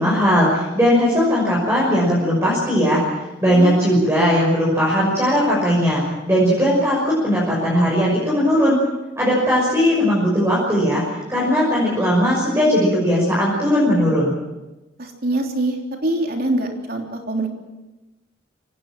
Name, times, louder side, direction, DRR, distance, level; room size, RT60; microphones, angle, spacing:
voice 1, 0.0-3.0 3.4-8.8 9.2-11.0 11.3-14.4, equal, 15° right, -5 dB, 6.1 m, -18 dB
voice 2, 3.5-3.8 15.0-17.5, right 1 dB, 50° right, 2 dB, 3.4 m, -24 dB
24.5 x 18.5 x 7.6 m, 1.1 s
head